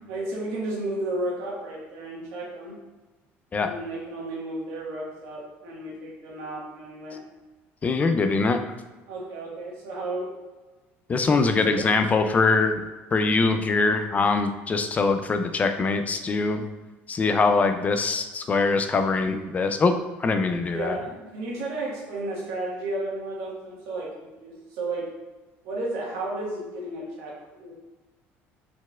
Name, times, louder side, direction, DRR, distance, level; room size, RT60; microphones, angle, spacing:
voice 1, 0.1-2.7 3.6-7.2 9.1-10.3 11.4-11.8 20.7-25.1 25.6-27.7, right 2 dB, 80° right, -4 dB, 1.4 m, -33 dB
voice 2, 7.8-8.6 11.1-12.8 13.1-16.6 17.1-19.9 20.2-21.0, left 4 dB, 30° left, 7 dB, 0.4 m, -23 dB
4.2 x 4.2 x 2.3 m, 1.2 s
supercardioid pair, 105°, 5 cm